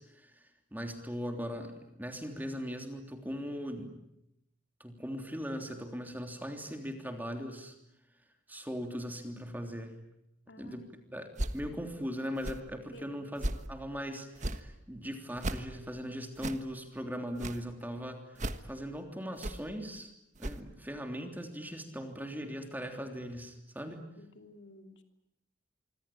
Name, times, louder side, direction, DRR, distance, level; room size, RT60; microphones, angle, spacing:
voice 1, 0.0-3.9 4.8-7.7 8.5-10.0 10.6-11.3 11.5-20.1 20.4-24.1, equal, 10° right, 5 dB, 3.3 m, -39 dB
voice 2, 10.5-10.9 12.9-13.1 24.2-25.0, left 1 dB, 65° left, 6 dB, 2.9 m, -53 dB
sound 1, 11.4-11.6 12.4-12.6 13.4-13.7 14.4-14.6 15.4-15.6 16.4-16.6 17.4-17.6 18.4-18.6 19.4-19.6 20.4-20.6, right 1 dB, 40° right, 1.4 m, -35 dB
25.5 x 25.5 x 8.9 m, 0.81 s
head